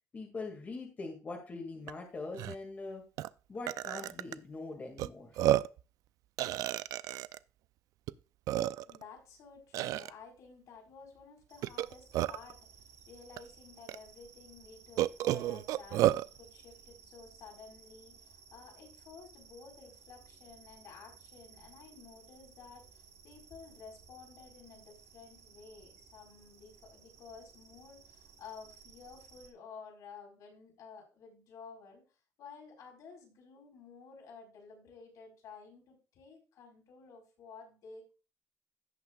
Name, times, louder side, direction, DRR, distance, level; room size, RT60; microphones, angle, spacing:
voice 1, 0.1-3.0 3.5-5.4, left 3 dB, 30° left, 1 dB, 2.2 m, -42 dB
Burping eructation, 1.9-2.0 2.3-2.6 3.2-3.3 3.7-4.4 5.0-5.1 5.4-5.8 6.4-7.4 8.1-8.2 8.5-9.0 9.7-10.1 11.6-12.5 13.4-13.5 13.9-14.0 15.0-16.3, right 13 dB, 85° right, 0.4 m, -30 dB
voice 2, 8.9-32.0 32.4-38.1, left 5 dB, 75° left, 0 dB, 4.3 m, -53 dB
sound 1, 11.5-29.5, right 6 dB, 50° right, 1.4 m, -58 dB
16.5 x 5.8 x 2.4 m, 0.34 s
cardioid pair, 150°, 6 cm